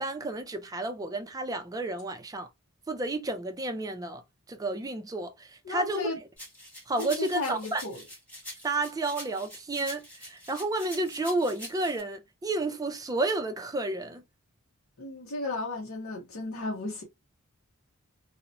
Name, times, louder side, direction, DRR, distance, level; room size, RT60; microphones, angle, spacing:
voice 1, 0.0-2.5 2.9-4.2 4.5-6.2 6.9-7.8 8.6-14.2, right 2 dB, 15° right, 0.4 m, -31 dB
voice 2, 5.6-6.2 7.2-8.0 15.0-17.0, left 2 dB, 65° left, 0.7 m, -34 dB
sound 1, 6.4-12.0, equal, 5° left, 1.4 m, -45 dB
2.9 x 2.0 x 2.5 m
head